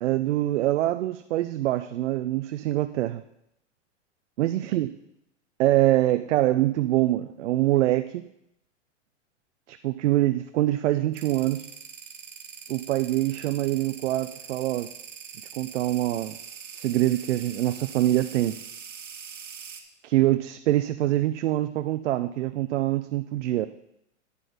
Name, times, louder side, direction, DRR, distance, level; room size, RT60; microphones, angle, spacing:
voice 1, 0.0-3.2 4.4-4.9 5.6-8.2 9.7-11.6 12.7-14.9 15.6-16.4 16.8-18.6 20.0-23.7, right 15 dB, 70° right, 11 dB, 0.6 m, -24 dB
sound 1, 11.1-19.8, right 7 dB, 90° right, 1.4 m, -42 dB
9.8 x 6.1 x 5.3 m, 0.80 s
hypercardioid pair, 120°, 37 cm